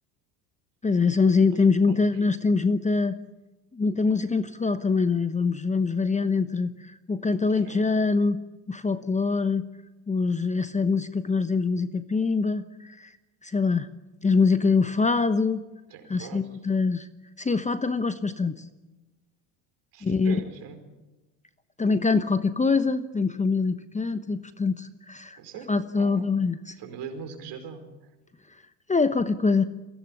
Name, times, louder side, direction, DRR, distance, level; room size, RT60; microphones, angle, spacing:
voice 1, 0.8-3.2 3.7-8.4 8.7-9.6 10.1-13.1 13.4-13.9 14.2-15.6 16.1-17.1 17.4-18.6 20.0-20.4 21.8-25.4 25.7-26.7 28.9-29.6, left 4 dB, 15° left, 11 dB, 1.0 m, -24 dB
voice 2, 15.9-16.5 19.9-20.8 25.4-26.3 26.8-27.8, right 6 dB, 60° right, 6 dB, 5.2 m, -41 dB
23.5 x 16.5 x 9.9 m, 1.1 s
hypercardioid pair, 85°, 47 cm